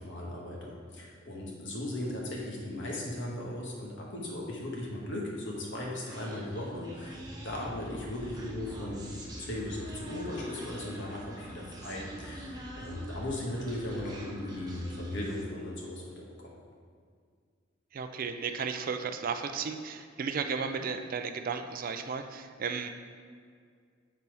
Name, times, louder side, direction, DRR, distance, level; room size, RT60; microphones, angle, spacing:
voice 1, 0.0-16.5, left 1 dB, 65° left, -3 dB, 1.4 m, -37 dB
Human voice, 6.1-15.5, right 1 dB, 20° right, 0.9 m, -45 dB
voice 2, 17.9-22.9, right 5 dB, 45° right, 7 dB, 0.4 m, -34 dB
6.9 x 4.2 x 4.7 m, 2.1 s
head